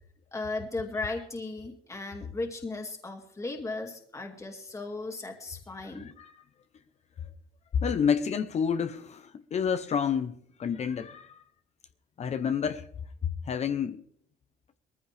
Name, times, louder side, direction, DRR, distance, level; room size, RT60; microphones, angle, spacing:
voice 1, 0.3-6.1, left 3 dB, 20° left, 2.3 m, -36 dB
voice 2, 5.8-6.3 7.8-11.4 12.2-12.9 13.2-14.0, left 7 dB, 40° left, 0.8 m, -29 dB
20.0 x 14.5 x 3.4 m
cardioid pair, 110°, 17 cm